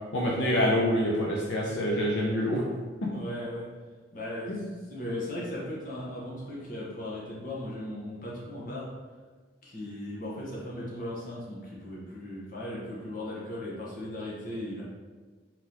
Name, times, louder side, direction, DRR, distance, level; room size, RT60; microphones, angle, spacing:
voice 1, 0.1-2.6 3.0-3.1 4.5-4.7, equal, 75° left, -3 dB, 0.6 m, -26 dB
voice 2, 3.1-3.7 4.1-8.9 9.6-14.8, left 1 dB, 45° left, -5 dB, 1.2 m, -37 dB
4.6 x 3.8 x 2.9 m, 1.4 s
head